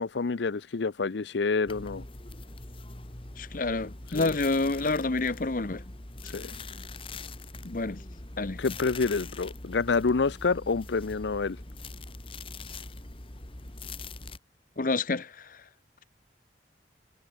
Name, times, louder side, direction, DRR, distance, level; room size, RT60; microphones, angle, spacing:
voice 1, 0.0-2.0 4.1-4.3 6.3-6.5 8.6-11.6, left 4 dB, 80° left, 0.6 m, -28 dB
sound 1, 1.7-14.4, left 2 dB, 30° left, 2.1 m, -42 dB
voice 2, 3.4-5.8 7.6-8.0 8.3-8.6 14.8-15.6, left 3 dB, 50° left, 0.9 m, -28 dB
head